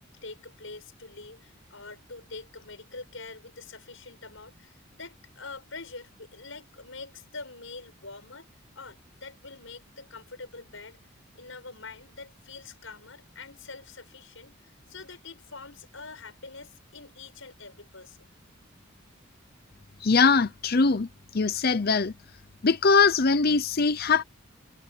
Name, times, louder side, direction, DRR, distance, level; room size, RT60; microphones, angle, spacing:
voice 1, 0.2-8.5 8.7-11.0 11.3-18.3, left 3 dB, 75° left, 6.3 m, -45 dB
voice 2, 20.0-21.1 21.3-22.1 22.6-24.2, left 4 dB, 50° left, 0.7 m, -21 dB
head